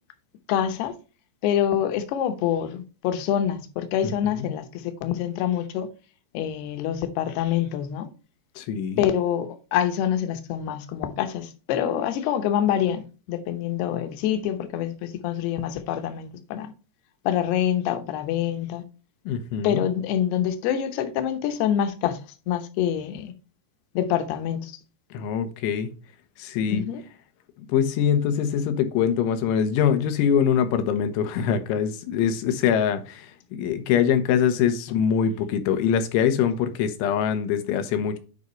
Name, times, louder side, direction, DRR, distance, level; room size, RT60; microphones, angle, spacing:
voice 1, 0.5-0.9 1.4-5.9 6.3-8.1 9.0-16.7 17.3-18.8 19.6-22.2 22.5-23.3 23.9-24.8 26.7-27.0, left 10 dB, 75° left, 2.8 m, -26 dB
voice 2, 4.0-4.5 8.6-9.1 19.3-19.8 25.1-25.9 26.4-26.8 27.7-38.2, left 8 dB, 90° left, 3.4 m, -23 dB
9.7 x 5.3 x 3.1 m
omnidirectional pair, 5.2 m